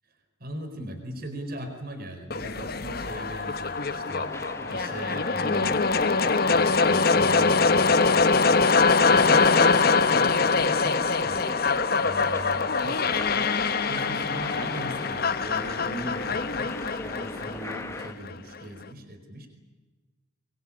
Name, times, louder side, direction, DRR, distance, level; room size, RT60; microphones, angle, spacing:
voice 1, 0.4-11.5 12.0-19.5, right 1 dB, 50° right, 6 dB, 4.7 m, -40 dB
sound 1, 2.3-18.3, left 4 dB, 50° left, 1.0 m, -23 dB
sound 2, 3.5-18.2, left 1 dB, 15° left, 1.3 m, -39 dB
24.0 x 24.0 x 8.7 m, 1.3 s
head